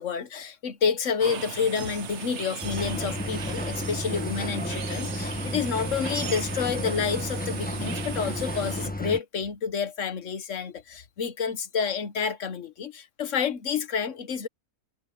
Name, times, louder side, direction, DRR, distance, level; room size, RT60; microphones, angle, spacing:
voice 1, 0.0-14.5, left 6 dB, 55° left, 1.4 m, -29 dB
sound 1, 1.2-8.9, right 8 dB, 55° right, 1.1 m, -37 dB
sound 2, 2.6-9.2, left 1 dB, 5° left, 1.2 m, -32 dB
omnidirectional pair, 1.6 m